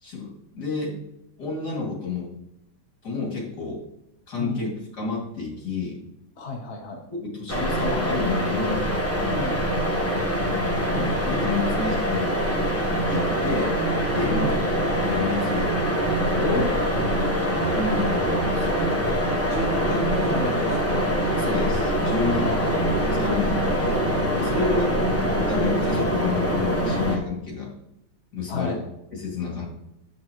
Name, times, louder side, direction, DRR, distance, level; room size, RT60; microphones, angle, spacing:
voice 1, 0.0-1.0 1.4-2.3 3.0-3.8 4.3-6.0 7.1-8.9 10.9-12.3 13.1-13.7 14.1-14.5 14.9-15.8 17.6-18.8 21.4-22.5 23.1-24.0 24.3-27.7 28.3-28.8 29.1-29.6, left 4 dB, 70° left, -2 dB, 3.0 m, -30 dB
voice 2, 6.4-7.0 9.2-9.6 14.2-14.6 16.4-16.7 17.1-17.4 19.5-21.1 22.4-23.0 24.5-25.0 28.5-28.8, left 1 dB, 45° left, 2 dB, 1.2 m, -31 dB
sound 1, 7.5-27.2, equal, 10° left, 0.9 m, -24 dB
8.4 x 7.8 x 3.0 m, 0.83 s
omnidirectional pair, 1.9 m